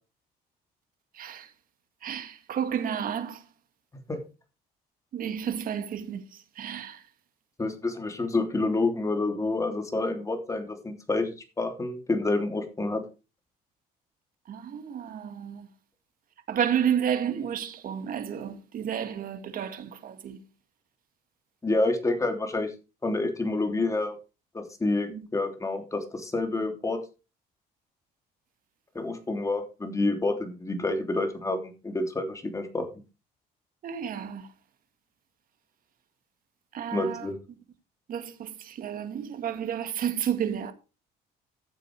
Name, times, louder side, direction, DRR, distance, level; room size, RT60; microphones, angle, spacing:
voice 1, 1.1-1.5 2.0-3.4 5.1-7.0 14.5-15.7 16.5-20.4 25.1-25.3 33.8-34.5 36.7-37.3 38.1-40.7, right 8 dB, 55° right, 2.1 m, -31 dB
voice 2, 7.6-13.0 21.6-22.7 23.0-24.1 24.5-27.0 28.9-32.9 36.9-37.4, left 2 dB, 20° left, 3.2 m, -28 dB
13.5 x 7.7 x 4.7 m
cardioid pair, 110°, 17 cm